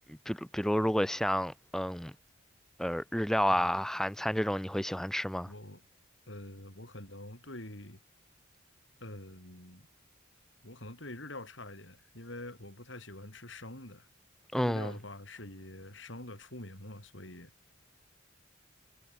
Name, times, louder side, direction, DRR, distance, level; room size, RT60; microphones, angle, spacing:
voice 1, 0.1-2.1 2.8-5.5 14.5-14.9, equal, ahead, 0.7 m, -30 dB
voice 2, 3.5-3.8 5.5-5.8 6.3-8.0 9.0-9.9 10.6-14.1 14.6-17.5, left 1 dB, 65° left, 6.9 m, -46 dB
head